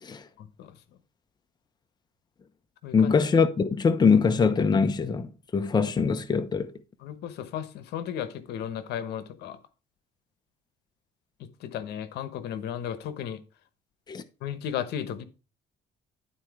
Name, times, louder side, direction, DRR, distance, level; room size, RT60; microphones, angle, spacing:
voice 1, 0.4-0.7 2.8-3.1 7.0-9.6 11.4-13.4 14.4-15.3, left 9 dB, 80° left, 1.1 m, -35 dB
voice 2, 2.9-6.7 14.1-14.2, left 5 dB, 25° left, 0.8 m, -23 dB
11.5 x 4.3 x 4.8 m
cardioid pair, 110°, 17 cm